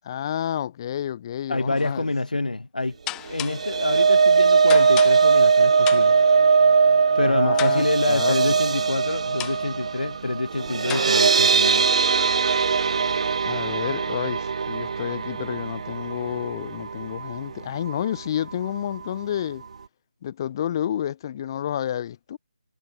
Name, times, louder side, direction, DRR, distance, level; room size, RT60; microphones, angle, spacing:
voice 1, 0.0-2.1 7.2-8.6 13.4-19.6 20.2-22.4, left 10 dB, 30° left, 4.4 m, -30 dB
voice 2, 1.5-3.0 3.3-6.2 7.2-11.9, left 2 dB, 80° left, 5.7 m, -27 dB
sound 1, 1.8-2.0 3.1-3.8 4.7-5.5 5.8-6.3 7.6-8.1 9.4-9.8 10.9-11.1, left 18 dB, 10° left, 1.3 m, -35 dB
sound 2, 3.3-17.5 17.9-18.1 18.4-18.5, right 5 dB, 50° right, 0.6 m, -20 dB
figure-of-eight pair, 155°, 4 cm